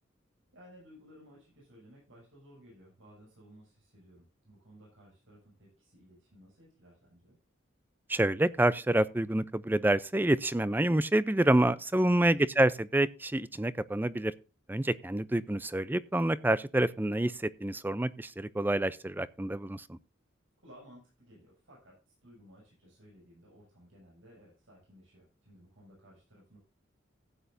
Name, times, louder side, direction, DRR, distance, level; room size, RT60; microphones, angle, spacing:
voice 1, 0.5-7.4 20.6-26.6, equal, 75° right, 6.7 m, -57 dB
voice 2, 8.1-14.3 14.7-20.0, right 1 dB, 10° right, 0.4 m, -27 dB
15.5 x 9.2 x 2.6 m
head